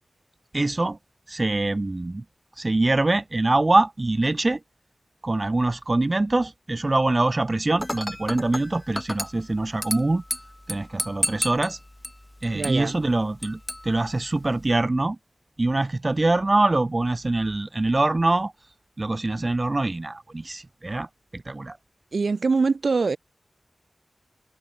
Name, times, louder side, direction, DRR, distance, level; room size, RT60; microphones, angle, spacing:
voice 1, 0.5-1.0 1.3-2.2 2.6-4.6 5.2-10.2 10.7-11.8 12.4-15.2 15.6-18.5 19.0-21.1 21.3-21.8, right 2 dB, 30° right, 1.4 m, -24 dB
Dishes pots and pans / Glass, 7.8-14.8, left 1 dB, 15° left, 0.8 m, -34 dB
voice 2, 12.5-12.9 22.1-23.2, right 4 dB, 65° right, 0.8 m, -23 dB
wide cardioid pair, 100°, 0 cm